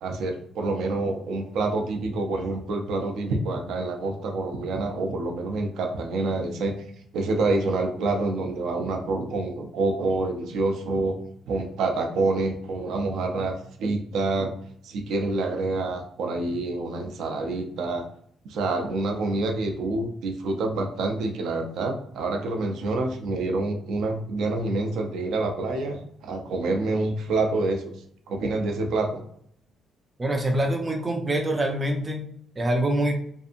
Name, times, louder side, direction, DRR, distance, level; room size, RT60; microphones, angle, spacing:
voice 1, 0.0-6.7 7.1-11.2 11.5-14.5 14.8-18.0 18.5-27.8 28.3-29.2, right 2 dB, 75° right, 3 dB, 0.5 m, -27 dB
voice 2, 30.2-33.1, right 1 dB, 20° right, 2 dB, 0.4 m, -25 dB
2.6 x 2.5 x 2.5 m, 0.67 s
cardioid pair, 165°, 0 cm